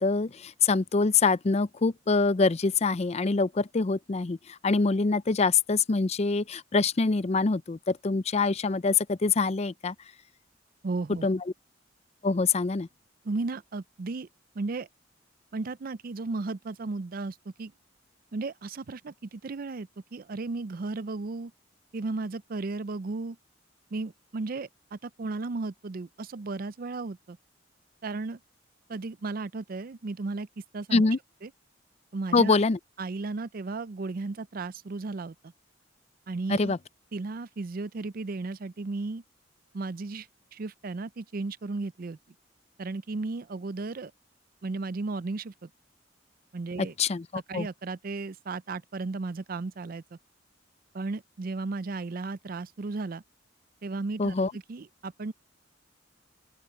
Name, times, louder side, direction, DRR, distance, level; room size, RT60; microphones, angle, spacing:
voice 1, 0.0-4.4 4.6-9.9 11.2-11.4 12.2-12.9 30.9-31.2 32.3-32.8 36.5-36.8 46.8-47.7 54.2-54.5, left 4 dB, 35° left, 0.5 m, -25 dB
voice 2, 10.8-11.3 13.2-14.3 14.6-14.9 15.5-17.7 18.3-21.5 21.9-23.4 23.9-27.4 28.0-28.4 28.9-30.5 30.7-31.0 31.4-31.5 32.1-32.6 33.0-35.5 36.3-36.7 37.1-39.2 39.7-40.3 40.5-42.2 42.8-44.1 44.6-45.5 46.5-46.9 47.5-50.2 50.9-53.2 53.8-55.3, right 3 dB, 50° right, 0.5 m, -34 dB
open air
head